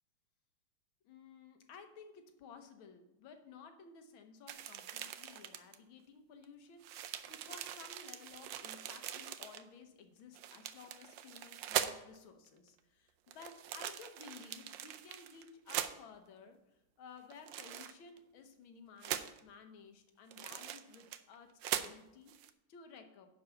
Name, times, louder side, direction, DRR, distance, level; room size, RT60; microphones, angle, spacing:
voice 1, 1.0-23.3, left 5 dB, 70° left, 7 dB, 1.8 m, -56 dB
sound 1, 4.5-5.8 6.4-6.5 6.8-9.6 10.3-12.2 13.3-15.9 17.3-18.2 19.0-19.4 20.3-21.4 21.6-21.9 22.3-22.5, right 11 dB, 75° right, 1.2 m, -41 dB
10.5 x 4.7 x 6.7 m, 0.92 s
omnidirectional pair, 2.3 m